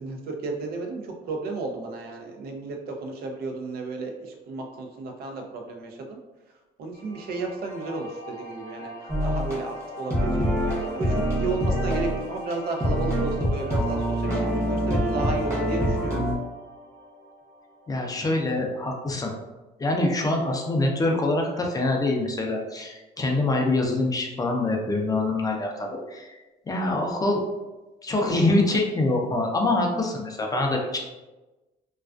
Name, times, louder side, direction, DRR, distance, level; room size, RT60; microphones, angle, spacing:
voice 1, 0.0-6.2 6.8-16.3, right 3 dB, 65° right, 3 dB, 0.5 m, -33 dB
sound 1, 6.9-18.0, left 1 dB, 55° left, 0.7 m, -41 dB
sound 2, 9.1-9.6 10.1-12.2 12.5-12.6 12.8-16.3, equal, 15° right, 0.8 m, -25 dB
voice 2, 17.9-19.3 19.8-26.4 26.7-27.4 28.0-31.0, left 2 dB, 20° left, 1 dB, 0.4 m, -25 dB
2.3 x 2.3 x 2.3 m, 1.1 s
cardioid pair, 110°, 17 cm